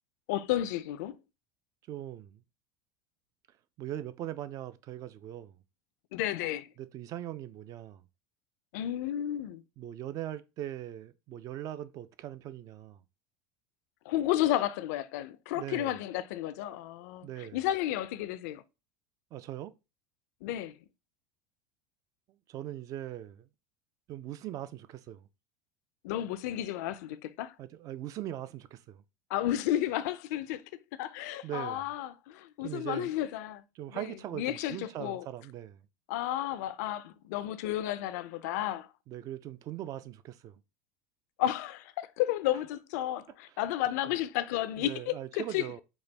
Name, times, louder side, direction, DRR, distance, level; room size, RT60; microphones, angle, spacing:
voice 1, 0.3-1.2 6.1-6.7 8.7-9.6 14.1-18.6 20.4-20.8 26.0-27.6 29.3-30.6 30.9-33.6 33.9-35.3 36.1-38.9 41.4-45.7, left 13 dB, 70° left, 0.4 m, -32 dB
voice 2, 1.9-2.4 3.8-5.6 6.8-8.0 9.8-13.0 15.5-16.0 17.2-17.6 19.3-19.7 22.5-23.5 24.1-25.3 27.6-29.0 31.4-31.9 32.6-33.1 33.8-35.8 39.1-40.6 44.8-45.8, right 12 dB, 40° right, 0.4 m, -40 dB
4.2 x 2.3 x 3.3 m
supercardioid pair, 125°, 9 cm